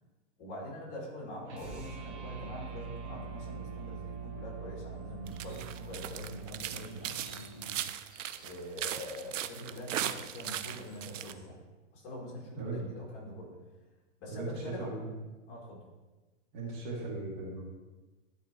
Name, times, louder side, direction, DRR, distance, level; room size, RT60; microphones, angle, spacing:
voice 1, 0.4-7.8 8.4-11.6 11.9-13.5 14.2-14.9 15.5-15.8, equal, 30° left, -4 dB, 2.1 m, -44 dB
sound 1, 1.5-7.8, right 5 dB, 15° right, 0.6 m, -44 dB
sound 2, 5.0-5.7 6.1-11.4, equal, ahead, 1.5 m, -61 dB
sound 3, 5.3-11.3, right 11 dB, 90° right, 0.6 m, -38 dB
voice 2, 12.5-12.9 14.3-15.1 16.5-17.6, right 2 dB, 40° right, -3 dB, 1.8 m, -38 dB
11.0 x 4.3 x 2.8 m, 1.2 s
hypercardioid pair, 160°, 37 cm